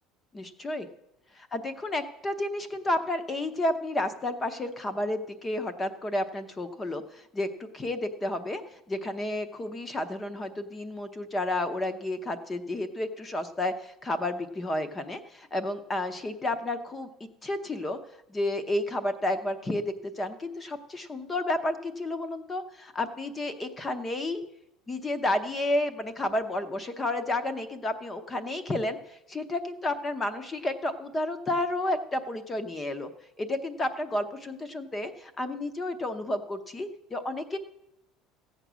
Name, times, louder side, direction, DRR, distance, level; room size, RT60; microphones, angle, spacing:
voice 1, 0.3-0.9 1.5-8.6 8.9-18.0 18.3-24.4 24.9-33.1 33.4-37.6, left 1 dB, 15° left, 10 dB, 0.7 m, -31 dB
15.5 x 8.0 x 6.2 m, 0.87 s
cardioid pair, 175°, 0 cm